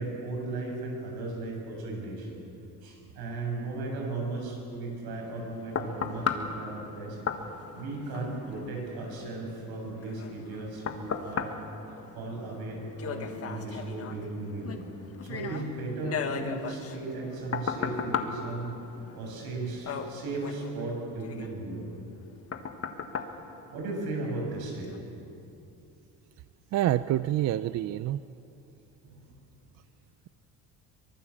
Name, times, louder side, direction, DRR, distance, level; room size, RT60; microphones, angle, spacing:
voice 1, 0.0-2.4 2.8-7.2 7.7-11.5 12.1-14.8 15.2-18.7 19.1-21.9 23.7-25.1 29.0-29.2, right 2 dB, 75° right, 0 dB, 7.7 m, -36 dB
sound 1, 5.1-24.3 24.8-25.0, left 6 dB, 40° left, 1.5 m, -37 dB
voice 2, 26.7-28.2, right 13 dB, 45° right, 14 dB, 0.5 m, -27 dB
24.0 x 23.0 x 7.2 m, 2.8 s
cardioid pair, 160°, 37 cm